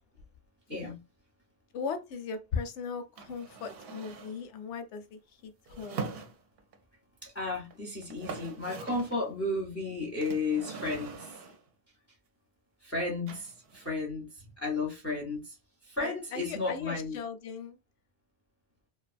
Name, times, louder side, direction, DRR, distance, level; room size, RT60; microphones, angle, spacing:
voice 1, 0.7-1.0 7.2-11.4 12.8-15.6 15.8-17.2, left 3 dB, 20° left, 0.5 m, -33 dB
voice 2, 1.7-6.0 16.0-17.8, left 5 dB, 85° left, 0.9 m, -38 dB
sound 1, 3.2-4.4 5.7-6.8 7.7-7.8 8.0-9.2 10.2-11.7 13.3-13.9, right 4 dB, 65° right, 0.7 m, -42 dB
2.5 x 2.3 x 2.4 m
omnidirectional pair, 1.2 m